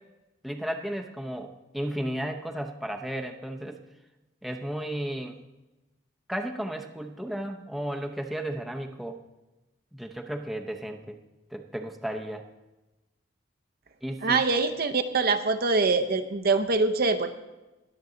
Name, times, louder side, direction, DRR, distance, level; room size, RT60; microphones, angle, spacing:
voice 1, 0.4-3.8 4.4-5.4 6.3-9.2 9.9-11.2 11.5-12.5 14.0-14.4, right 1 dB, ahead, 3 dB, 0.7 m, -34 dB
voice 2, 14.2-17.3, right 3 dB, 55° right, 8 dB, 0.8 m, -24 dB
21.0 x 7.1 x 3.9 m, 1.0 s
head